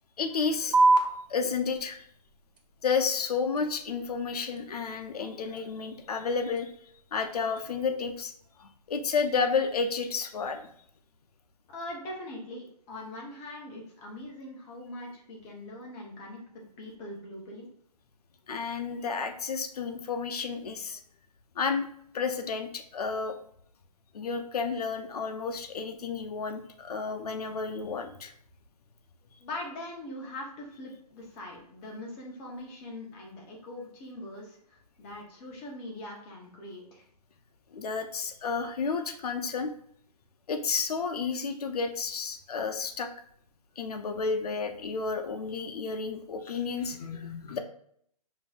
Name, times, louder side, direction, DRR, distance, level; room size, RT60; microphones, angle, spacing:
voice 1, 0.2-1.0 1.3-2.0 2.8-6.7 7.1-8.3 8.6-10.6 18.5-21.0 21.6-21.9 22.1-23.3 24.1-28.3 37.7-39.7 40.5-43.1 43.8-47.6, left 5 dB, 65° left, 6 dB, 0.6 m, -31 dB
sound 1, 0.7-7.7, right 3 dB, 75° right, 0.8 m, -31 dB
voice 2, 11.7-16.4 16.8-17.7 29.4-37.0, left 1 dB, 20° left, -1 dB, 0.7 m, -42 dB
5.2 x 2.7 x 2.3 m, 0.66 s
hypercardioid pair, 150°, 21 cm